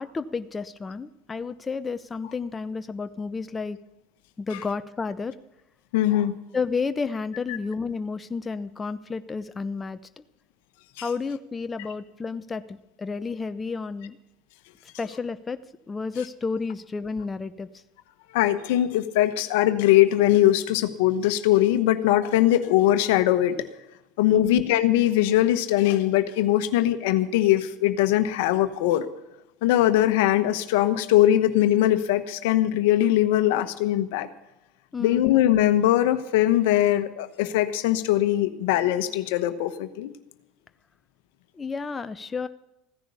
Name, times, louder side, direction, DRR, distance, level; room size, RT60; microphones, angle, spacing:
voice 1, 0.0-3.8 4.4-5.4 6.5-10.2 11.0-14.2 15.0-15.6 15.9-17.7 24.3-24.6 34.9-35.2 41.5-42.5, left 4 dB, 20° left, 11 dB, 0.7 m, -31 dB
voice 2, 5.9-6.3 7.5-7.6 11.0-11.1 18.3-23.7 24.2-29.1 29.6-34.3 35.0-40.1, left 13 dB, 75° left, 11 dB, 1.1 m, -21 dB
15.5 x 10.0 x 7.0 m, 0.90 s
hypercardioid pair, 85°, 0 cm